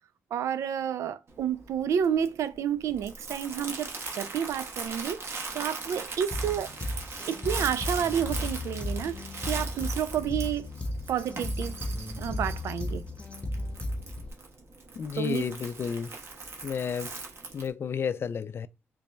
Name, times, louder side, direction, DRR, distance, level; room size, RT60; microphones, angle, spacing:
voice 1, 0.3-5.2 5.5-6.7 7.3-10.7 11.1-11.8 12.2-13.0 15.2-15.5, right 8 dB, 85° right, 0.4 m, -30 dB
Crumpling crinkling, 1.3-17.7, right 3 dB, 55° right, 1.1 m, -40 dB
sound 1, 6.3-14.3, left 1 dB, 25° left, 0.8 m, -34 dB
voice 2, 15.0-16.1 16.6-17.2 17.5-18.7, left 7 dB, 55° left, 0.3 m, -31 dB
4.0 x 2.2 x 3.2 m
cardioid pair, 80°, 5 cm